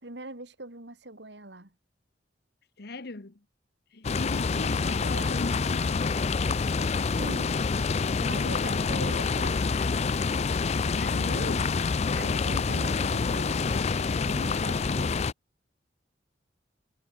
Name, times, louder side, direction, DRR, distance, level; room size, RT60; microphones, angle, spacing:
voice 1, 0.0-1.7 4.6-5.4 7.1-7.7 8.2-9.9 11.1-11.6 12.1-15.2, right 2 dB, 65° right, 3.2 m, -42 dB
voice 2, 2.8-3.4 3.9-6.2 8.3-9.2 10.9-11.7, left 2 dB, 60° left, 1.2 m, -40 dB
sound 1, 4.0-15.3, left 4 dB, 35° left, 0.4 m, -27 dB
head